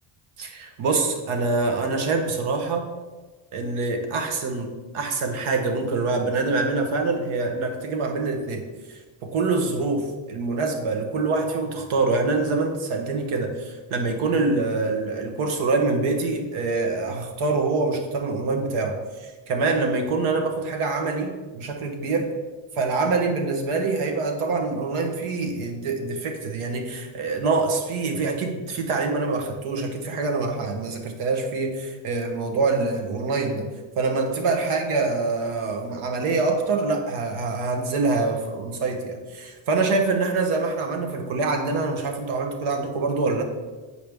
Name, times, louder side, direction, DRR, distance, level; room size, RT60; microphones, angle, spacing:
voice 1, 0.4-2.9 3.5-8.6 8.9-22.3 22.8-33.7 34.0-43.4, right 3 dB, 80° right, 4 dB, 1.2 m, -25 dB
8.2 x 4.7 x 3.5 m, 1.3 s
cardioid pair, 165°, 49 cm